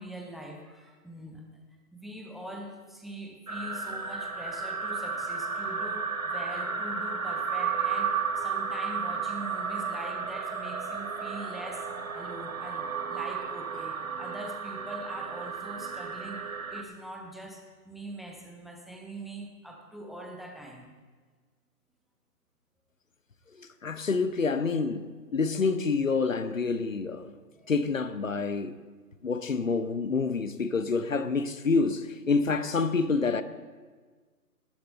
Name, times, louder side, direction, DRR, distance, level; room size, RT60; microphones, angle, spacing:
voice 1, 0.0-1.6 1.9-11.9 12.1-21.0 27.6-27.7, right 1 dB, ahead, 0.5 m, -43 dB
sound 1, 3.5-16.8, right 5 dB, 60° right, 1.2 m, -33 dB
voice 2, 23.5-27.3 27.7-28.8 29.2-33.4, left 4 dB, 55° left, 0.8 m, -27 dB
19.0 x 9.3 x 3.9 m
hypercardioid pair, 180°, 46 cm